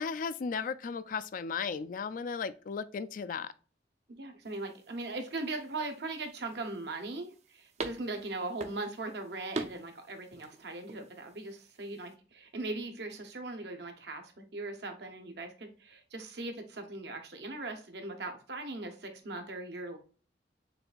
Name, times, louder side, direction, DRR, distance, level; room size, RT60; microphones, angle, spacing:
voice 1, 0.0-3.5, left 5 dB, 50° left, 0.3 m, -35 dB
voice 2, 4.1-20.0, right 2 dB, 70° right, 0.9 m, -39 dB
sound 1, 4.4-12.2, right 3 dB, 40° right, 0.5 m, -45 dB
6.6 x 2.6 x 2.3 m
head